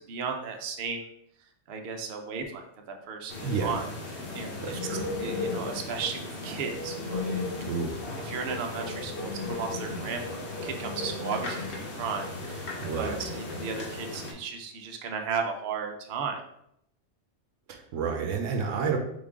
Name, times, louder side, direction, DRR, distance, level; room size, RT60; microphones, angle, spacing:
voice 1, 0.1-1.1 1.7-2.6 3.1-3.9 4.3-4.5 5.2-7.4 8.3-12.7 13.0-16.4, right 5 dB, 60° right, 3 dB, 0.8 m, -35 dB
sound 1, 3.3-14.3, left 2 dB, 65° left, 1.3 m, -35 dB
voice 2, 3.4-3.8 4.6-5.1 7.6-8.0 12.8-13.2 17.7-19.0, right 5 dB, 80° right, 4 dB, 1.0 m, -30 dB
3.9 x 3.6 x 3.6 m, 0.75 s
omnidirectional pair, 1.3 m